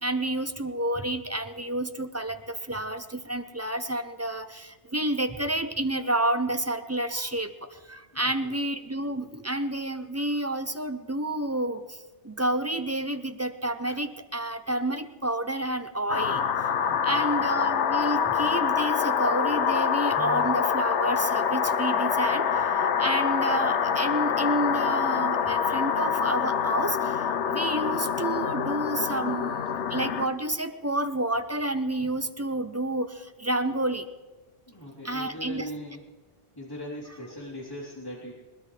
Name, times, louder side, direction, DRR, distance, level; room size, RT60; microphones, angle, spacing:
voice 1, 0.0-12.0 12.2-16.7 17.0-34.1 35.0-35.6, right 1 dB, 20° right, 8 dB, 0.5 m, -30 dB
voice 2, 8.1-8.6 16.8-17.3 34.7-36.0 36.6-38.3, equal, 20° left, -5 dB, 3.7 m, -40 dB
sound 1, 16.1-30.3, left 7 dB, 85° left, 1.1 m, -26 dB
21.0 x 19.5 x 3.3 m, 1.2 s
omnidirectional pair, 1.2 m